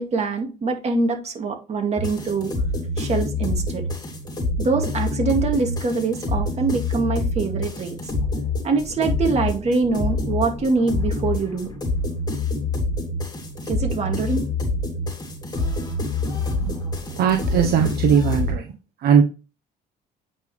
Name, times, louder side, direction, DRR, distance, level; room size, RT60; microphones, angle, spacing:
voice 1, 0.0-2.5 3.0-3.8 4.6-8.0 8.6-11.7 13.7-14.4, right 4 dB, 40° right, 2.3 m, -24 dB
sound 1, 2.0-18.5, left 2 dB, 25° left, 3.1 m, -26 dB
voice 2, 17.2-18.6 19.0-19.2, right 7 dB, 65° right, 1.0 m, -18 dB
8.9 x 5.2 x 3.3 m
cardioid pair, 110°, 17 cm